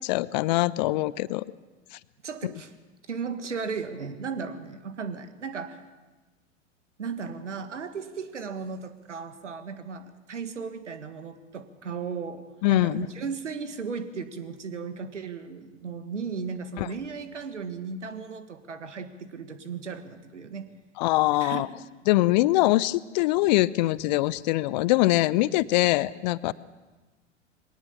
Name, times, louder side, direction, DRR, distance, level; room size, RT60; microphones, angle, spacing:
voice 1, 0.0-1.4 12.6-13.1 16.8-16.9 21.0-21.7 22.1-26.5, left 18 dB, 35° left, 20 dB, 0.6 m, -23 dB
voice 2, 2.2-2.7 3.1-5.8 7.0-20.7 21.4-21.7, right 5 dB, 75° right, 10 dB, 1.8 m, -36 dB
21.5 x 18.5 x 7.1 m, 1.2 s
figure-of-eight pair, 95°, 37 cm